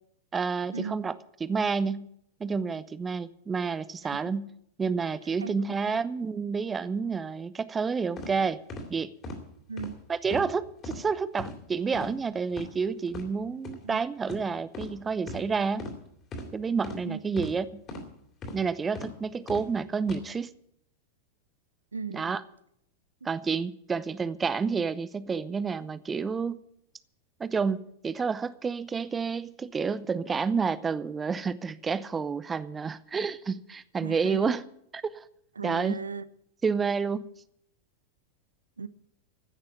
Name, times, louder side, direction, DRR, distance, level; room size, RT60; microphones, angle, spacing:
voice 1, 0.3-1.1 1.4-2.1 2.4-4.5 4.8-8.6 8.9-9.1 10.1-15.9 16.5-17.8 18.5-20.5 22.1-22.4 23.2-26.6 27.4-34.6 34.9-35.2 35.6-35.9 36.6-37.3, right 5 dB, 15° right, 0.7 m, -29 dB
voice 2, 5.2-6.0 9.7-10.0 13.8-14.0 17.0-17.2 21.9-22.3 23.2-23.3 34.0-34.5 35.6-36.3 38.8-38.9, right 5 dB, 75° right, 0.5 m, -37 dB
sound 1, 8.2-8.3 8.7-8.9 9.2-9.4 9.8-9.9 10.3-10.5 10.8-11.0 11.4-11.6 11.9-12.1 12.5-12.7 13.1-13.3 13.6-13.8 14.3-14.4 14.7-14.9 15.3-15.4 15.8-16.0 16.3-16.5 16.8-17.0 17.4-17.5 17.9-18.1 18.4-18.6 18.9-19.1 19.5-19.7 20.0-20.2, left 2 dB, 30° left, 3.0 m, -38 dB
15.0 x 6.6 x 10.0 m
figure-of-eight pair, 90°, 0 cm